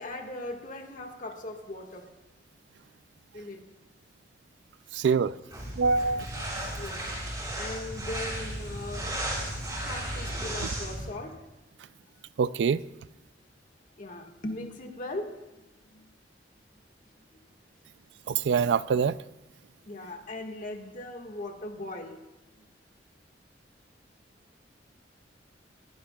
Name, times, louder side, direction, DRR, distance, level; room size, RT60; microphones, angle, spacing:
voice 1, 0.0-2.1 3.3-3.6 6.8-7.2 7.6-9.1 9.7-11.4 14.0-16.1 18.3-18.5 19.8-22.2 22.6-22.7, left 2 dB, 45° left, 1.7 m, -39 dB
voice 2, 4.9-5.4 5.8-6.5 12.4-12.8 18.3-19.2, right 5 dB, 70° right, 0.3 m, -25 dB
sound 1, 5.5-11.1, right 1 dB, 20° right, 5.9 m, -34 dB
20.5 x 16.0 x 2.3 m
head